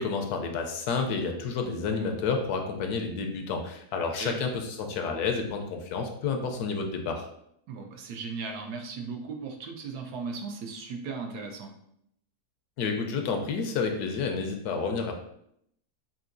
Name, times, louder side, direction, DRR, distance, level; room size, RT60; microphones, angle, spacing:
voice 1, 0.0-7.3 12.8-15.1, left 5 dB, 75° left, 4 dB, 1.1 m, -30 dB
voice 2, 7.7-11.7, right 4 dB, 75° right, 3 dB, 1.1 m, -37 dB
5.6 x 2.6 x 2.5 m, 0.72 s
omnidirectional pair, 1.8 m